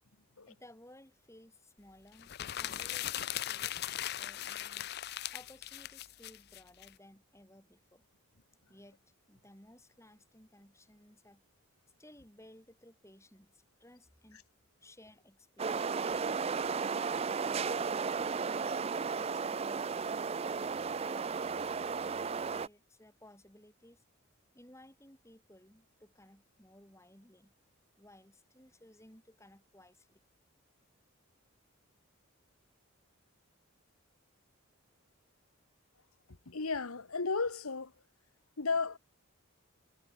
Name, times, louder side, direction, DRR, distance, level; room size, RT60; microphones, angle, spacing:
voice 1, 0.5-4.9 5.3-8.0 8.7-9.0 9.3-11.4 12.0-14.4 14.8-16.3 16.9-18.1 18.5-20.4 21.1-24.0 24.5-27.5 28.0-30.2, left 1 dB, 15° left, 4.6 m, -58 dB
sound 1, 2.2-6.9, left 12 dB, 50° left, 0.5 m, -39 dB
sound 2, 15.6-22.7, right 5 dB, 30° right, 0.3 m, -34 dB
voice 2, 36.4-37.9 38.6-39.0, left 4 dB, 85° left, 1.4 m, -34 dB
head